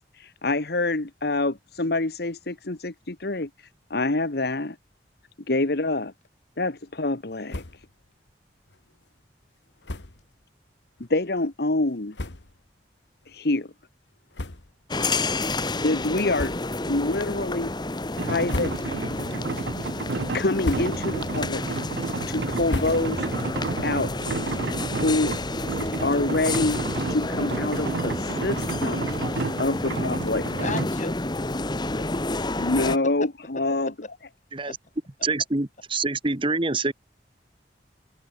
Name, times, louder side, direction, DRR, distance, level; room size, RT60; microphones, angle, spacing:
voice 1, 0.2-3.5 3.9-4.8 5.5-6.1 6.6-7.6 11.1-12.1 13.3-13.7 15.8-16.6 16.9-17.7 18.1-18.7 20.3-21.6 22.3-23.3 23.8-24.1 24.9-25.4 26.0-26.8 27.1-30.5 32.6-33.9, left 2 dB, 60° left, 1.5 m, -26 dB
sound 1, 7.5-8.0 8.3-8.4 8.7-8.8 9.8-10.3 11.0-11.1 11.8-11.9 12.1-12.7 13.2-13.4 14.3-15.0 15.3-15.5 16.3-16.9 17.4-17.8 18.3-19.2 19.5-20.0 20.4-21.2 21.6-23.4, left 1 dB, 85° left, 1.8 m, -36 dB
sound 2, 14.9-33.0, left 2 dB, 25° left, 1.4 m, -30 dB
sound 3, 18.2-30.9, right 3 dB, 70° right, 0.6 m, -31 dB
voice 2, 30.4-31.1 33.2-33.3 33.9-34.1 34.7-34.8, left 3 dB, 45° left, 4.7 m, -36 dB
voice 3, 35.2-36.9, right 3 dB, 30° right, 1.5 m, -26 dB
head